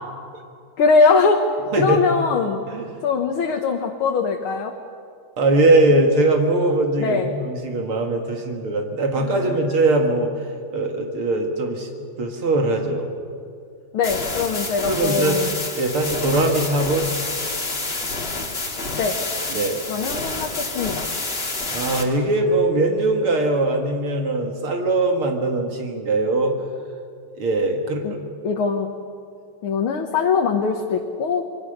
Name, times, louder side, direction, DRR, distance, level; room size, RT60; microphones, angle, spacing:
voice 1, 0.8-1.4 1.8-2.6 3.0-4.7 7.0-7.3 9.2-9.4 13.9-15.5 19.0-19.2 19.9-21.0 28.0-28.1 28.4-28.9 29.6-31.4, left 5 dB, 75° left, 2 dB, 2.1 m, -21 dB
voice 2, 5.4-10.3 10.7-11.9 12.2-13.1 14.9-15.4 15.8-17.1 19.5-19.8 21.7-26.5 27.4-28.2, right 2 dB, 75° right, 2 dB, 2.8 m, -21 dB
sound 1, 14.0-22.0, left 3 dB, 25° left, 2.3 m, -28 dB
27.0 x 23.0 x 6.7 m, 2.3 s
omnidirectional pair, 2.4 m